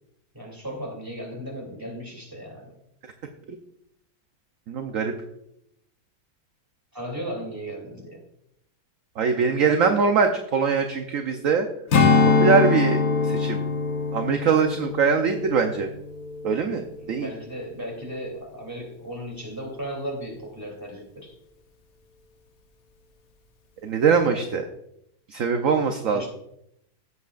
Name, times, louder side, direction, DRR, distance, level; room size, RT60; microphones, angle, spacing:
voice 1, 0.3-2.7 6.9-8.2 17.0-21.3 26.1-26.3, equal, 10° right, 0 dB, 2.8 m, -36 dB
voice 2, 4.7-5.1 9.2-11.7 12.2-13.6 14.1-15.9 16.4-17.3 23.8-24.6 25.3-26.2, right 5 dB, 55° right, 5 dB, 1.0 m, -22 dB
Strum, 11.9-16.6 17.0-17.2, left 4 dB, 55° left, 1.4 m, -23 dB
15.5 x 8.3 x 2.5 m, 0.78 s
omnidirectional pair, 2.0 m